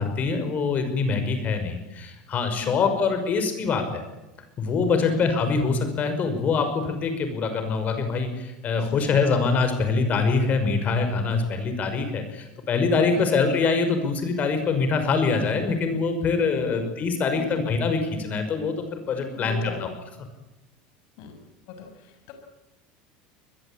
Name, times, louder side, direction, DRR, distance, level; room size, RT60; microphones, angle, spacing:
voice 1, 0.0-4.0 4.6-19.9, left 4 dB, 40° left, 7 dB, 5.5 m, -24 dB
voice 2, 16.5-16.9 17.5-17.6 19.3-19.8 21.2-21.3 21.8-21.9 22.3-22.4, left 5 dB, 65° left, 5 dB, 6.0 m, -38 dB
25.5 x 21.0 x 8.9 m, 1.0 s
supercardioid pair, 110°, 4 cm